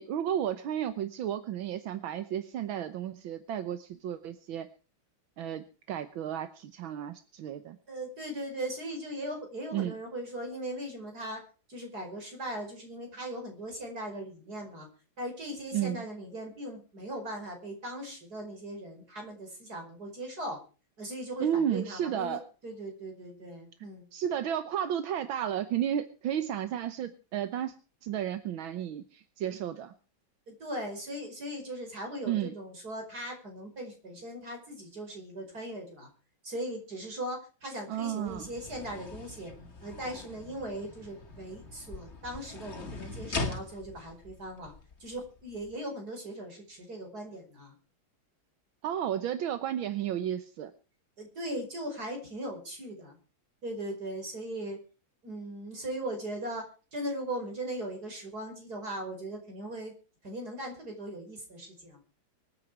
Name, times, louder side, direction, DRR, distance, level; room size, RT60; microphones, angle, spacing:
voice 1, 0.0-4.7 5.4-7.8 9.7-9.9 15.7-16.0 21.4-22.4 24.1-27.7 28.0-29.9 32.3-32.5 37.9-38.5 48.8-50.7, right 10 dB, 80° right, 10 dB, 1.8 m, -32 dB
voice 2, 7.9-11.4 11.7-14.9 15.2-20.6 21.0-24.1 30.5-36.1 36.4-39.5 39.8-44.7 45.0-47.7 51.2-53.2 53.6-54.8 55.2-59.9 60.2-62.0, right 1 dB, 50° right, 3 dB, 5.6 m, -39 dB
sound 1, 38.2-45.7, left 3 dB, 35° left, 2.4 m, -41 dB
25.0 x 9.4 x 4.7 m, 0.36 s
omnidirectional pair, 2.1 m